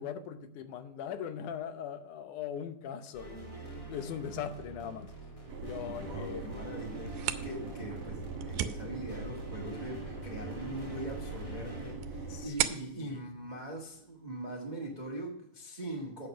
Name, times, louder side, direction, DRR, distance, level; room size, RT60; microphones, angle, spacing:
voice 1, 0.0-5.1 5.6-6.5 12.3-13.2, left 8 dB, 80° left, 9 dB, 2.3 m, -40 dB
sound 1, 3.1-11.9, right 2 dB, 15° left, 1.2 m, -46 dB
sound 2, 5.5-12.5, right 3 dB, 65° right, 2.6 m, -42 dB
voice 2, 5.8-16.3, right 1 dB, 30° right, -1 dB, 0.7 m, -42 dB
sound 3, 6.9-14.5, right 11 dB, 80° right, 2.1 m, -40 dB
8.4 x 6.8 x 5.9 m, 0.75 s
omnidirectional pair, 3.5 m